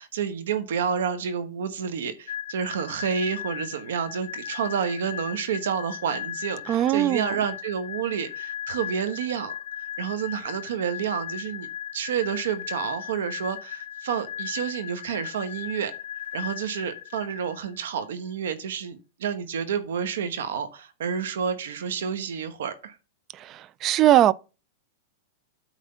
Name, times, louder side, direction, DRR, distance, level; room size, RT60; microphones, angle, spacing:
voice 1, 0.0-9.5 9.8-15.9 16.3-23.0, right 7 dB, 80° right, 1.1 m, -29 dB
sound 1, 2.3-17.9, left 10 dB, 65° left, 0.9 m, -37 dB
voice 2, 6.7-7.3 23.3-24.3, right 12 dB, 30° right, 0.3 m, -20 dB
9.0 x 3.4 x 5.6 m
supercardioid pair, 145°, 0 cm